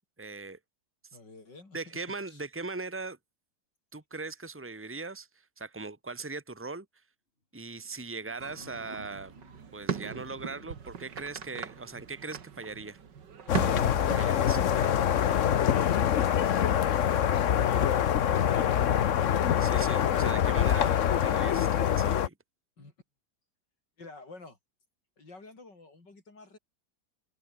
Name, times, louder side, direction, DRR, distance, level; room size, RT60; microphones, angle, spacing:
voice 1, 0.2-0.6 1.7-3.2 3.9-5.3 5.6-6.9 7.5-9.3 9.7-13.0 14.1-14.6 19.6-22.3, right 3 dB, 5° right, 2.1 m, -39 dB
voice 2, 1.1-2.0 2.3-2.4 22.8-22.9 24.0-24.6 25.2-26.6, left 3 dB, 90° left, 6.0 m, -49 dB
sound 1, 7.8-10.8, left 1 dB, 30° left, 6.7 m, -56 dB
sound 2, 8.4-15.0, right 7 dB, 85° right, 2.5 m, -39 dB
sound 3, 13.5-22.3, left 9 dB, 55° left, 1.1 m, -25 dB
omnidirectional pair, 1.8 m